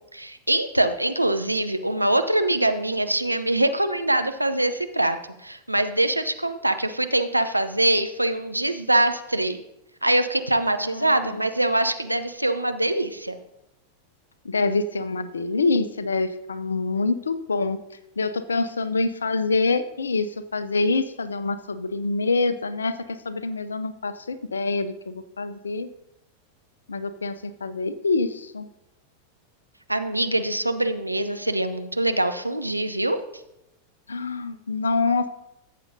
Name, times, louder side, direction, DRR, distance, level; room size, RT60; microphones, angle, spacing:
voice 1, 0.1-5.2 5.4-9.6 10.0-13.4 29.9-33.2, right 1 dB, 85° right, 9 dB, 0.6 m, -23 dB
voice 2, 10.8-11.4 14.4-17.8 18.2-25.9 26.9-28.7 34.1-35.3, left 3 dB, 75° left, 13 dB, 0.5 m, -26 dB
14.0 x 7.5 x 2.7 m, 0.87 s
figure-of-eight pair, 90°, 0 cm